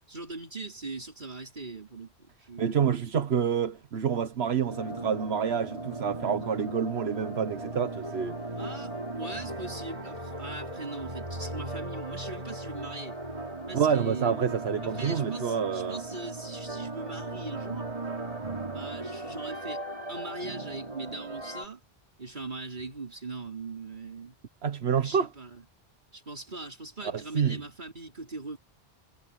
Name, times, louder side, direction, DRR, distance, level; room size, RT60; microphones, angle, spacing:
voice 1, 0.0-3.1 8.6-13.2 13.7-14.4 14.8-17.9 18.7-19.8 20.1-21.8 22.2-24.4 25.0-25.6 26.1-28.6, right 3 dB, 50° right, 3.9 m, -40 dB
voice 2, 2.6-8.4 13.7-16.0 24.6-25.3 27.3-27.6, right 7 dB, 80° right, 1.3 m, -28 dB
sound 1, 4.7-21.7, right 2 dB, 35° right, 3.4 m, -37 dB
omnidirectional pair, 1.1 m